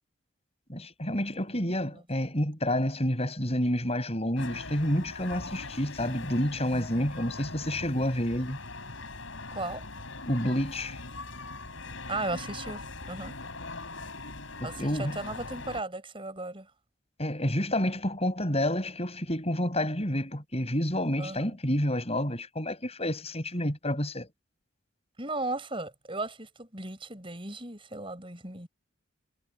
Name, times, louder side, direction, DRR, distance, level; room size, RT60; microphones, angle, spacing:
voice 1, 0.7-8.6 10.3-11.0 14.6-15.2 17.2-24.3, left 1 dB, 30° left, 8.0 m, -29 dB
sound 1, 4.4-15.8, left 3 dB, 70° left, 6.4 m, -41 dB
voice 2, 9.5-9.8 12.1-13.3 14.6-16.7 21.2-21.6 25.2-28.7, right 2 dB, 25° right, 6.4 m, -36 dB
head